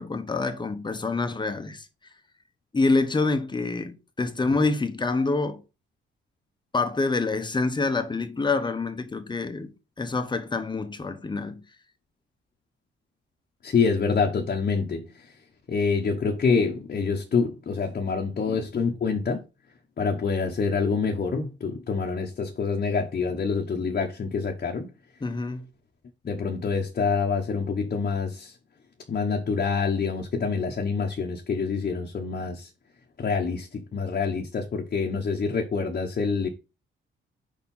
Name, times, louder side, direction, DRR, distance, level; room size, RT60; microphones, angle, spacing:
voice 1, 0.0-1.8 2.7-5.6 6.7-9.7 10.0-11.6 18.5-18.6 25.2-25.6, left 3 dB, 20° left, 1.0 m, -26 dB
voice 2, 13.6-15.3 15.7-19.4 20.0-24.9 26.2-28.6 29.1-32.7 33.2-36.5, left 5 dB, 45° left, 1.1 m, -26 dB
5.0 x 4.6 x 5.5 m
cardioid pair, 105°, 21 cm